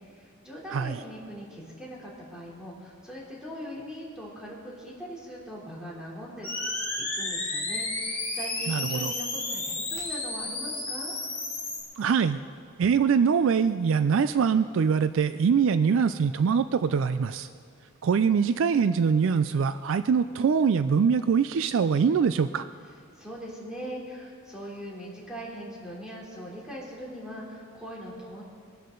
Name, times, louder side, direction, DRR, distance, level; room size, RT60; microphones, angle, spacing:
voice 1, 0.1-6.5 7.0-11.2 23.1-28.4, equal, 5° right, -5 dB, 3.2 m, -41 dB
sound 1, 6.4-11.8, left 2 dB, 10° left, 3.2 m, -32 dB
voice 2, 8.7-9.1 12.0-12.4 12.8-17.5 18.0-22.6, right 6 dB, 65° right, 12 dB, 0.3 m, -23 dB
22.5 x 12.0 x 3.8 m, 2.2 s
head